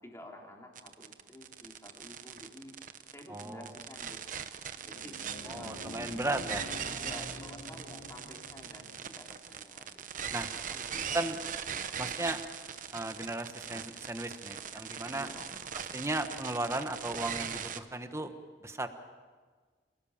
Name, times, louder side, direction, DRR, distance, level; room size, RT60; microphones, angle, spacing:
voice 1, 0.0-2.7 3.1-5.1 5.4-6.5 7.0-11.2 15.1-15.6, left 1 dB, 15° left, -1 dB, 3.6 m, -51 dB
sound 1, 0.8-17.8, right 7 dB, 50° right, 1.0 m, -40 dB
voice 2, 3.3-3.7 5.5-6.6 10.3-10.5 11.1-11.4 12.0-12.4 12.9-15.3 15.7-18.3 18.6-18.9, right 2 dB, 15° right, 8 dB, 1.3 m, -35 dB
sound 2, 4.7-9.4, left 1 dB, 65° left, 3.5 m, -47 dB
26.5 x 18.0 x 7.3 m, 1.5 s
head